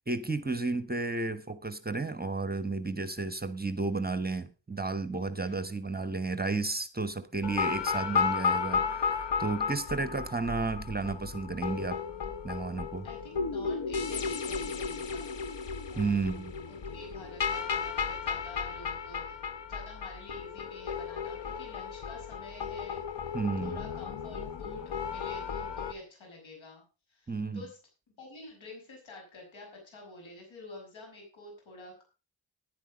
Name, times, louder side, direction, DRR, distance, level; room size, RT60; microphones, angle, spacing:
voice 1, 0.1-12.0 12.4-13.1 15.9-16.5 23.3-23.8 27.3-27.6, right 3 dB, 20° right, 1.2 m, -32 dB
sound 1, 7.4-25.9, left 6 dB, 65° left, 1.2 m, -34 dB
voice 2, 9.8-10.2 13.0-15.4 15.9-16.4 16.7-23.0 23.6-26.8 27.1-27.8 28.1-32.0, left 2 dB, 80° left, 6.4 m, -49 dB
10.5 x 10.5 x 5.1 m
cardioid pair, 65°, 46 cm